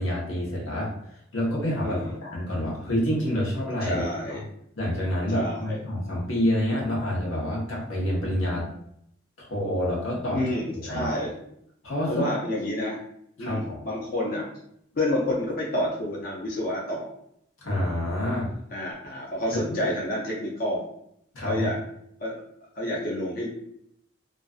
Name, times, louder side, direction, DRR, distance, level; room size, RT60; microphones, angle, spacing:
voice 1, 0.0-4.4 4.8-8.7 9.4-10.4 10.7-11.1 11.8-12.2 13.4-13.8 17.6-18.5 19.5-19.6 21.3-21.7, left 1 dB, 90° left, -4 dB, 0.9 m, -28 dB
voice 2, 1.8-2.2 3.8-4.4 5.3-5.8 10.3-11.3 12.1-13.0 13.4-14.5 15.0-17.1 18.7-20.8 21.5-21.8 22.2-22.4 22.8-23.5, left 1 dB, 45° left, -3 dB, 0.4 m, -29 dB
2.4 x 2.3 x 2.3 m, 0.73 s
head